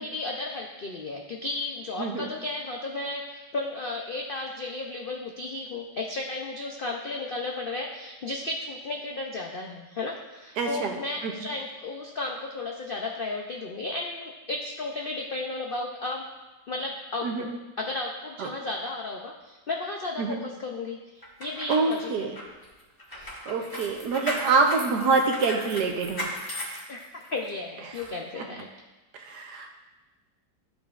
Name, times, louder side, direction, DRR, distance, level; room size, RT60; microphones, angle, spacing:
voice 1, 0.0-16.3 16.7-17.5 17.8-21.0 21.4-22.3 26.9-28.7, left 2 dB, 70° left, 0 dB, 0.5 m, -34 dB
voice 2, 10.6-11.0 11.2-11.3 17.2-17.5 18.4-18.5 20.2-20.4 21.7-22.4 23.5-26.3 29.2-29.8, right 4 dB, 75° right, 3 dB, 1.4 m, -25 dB
sound 1, 21.2-27.5 28.0-28.1, equal, 15° left, 1.1 m, -37 dB
12.5 x 5.2 x 2.4 m, 1.1 s
omnidirectional pair, 1.8 m